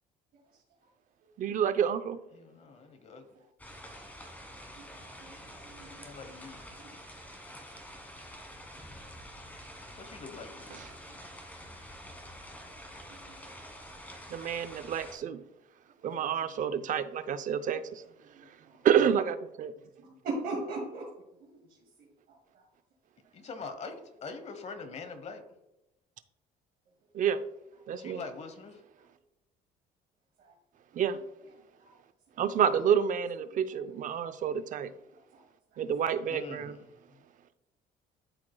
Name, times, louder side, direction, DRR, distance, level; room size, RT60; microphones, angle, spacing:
voice 1, 1.4-2.2 14.3-15.4 16.0-18.0 18.8-19.7 27.1-27.4 27.9-28.2 31.0-31.2 32.4-34.9 35.8-36.7, right 8 dB, 50° right, 12 dB, 0.6 m, -28 dB
voice 2, 2.3-3.3 6.0-6.6 10.0-10.8 23.3-25.4 28.0-28.8 36.3-37.2, left 4 dB, 40° left, 9 dB, 1.0 m, -44 dB
sound 1, 3.6-15.2, equal, 10° left, 1.5 m, -47 dB
voice 3, 4.9-6.0 6.8-6.9 10.9-11.2 12.5-12.8 13.2-13.9 14.1-14.2 16.0-16.1 18.2-18.9 20.2-21.1 21.4-21.5 22.0-22.4 30.4-30.5 31.8-32.0 35.3-35.4 35.7-35.8, right 2 dB, 70° right, -5 dB, 2.2 m, -41 dB
12.5 x 4.6 x 2.3 m, 0.90 s
cardioid pair, 110°, 17 cm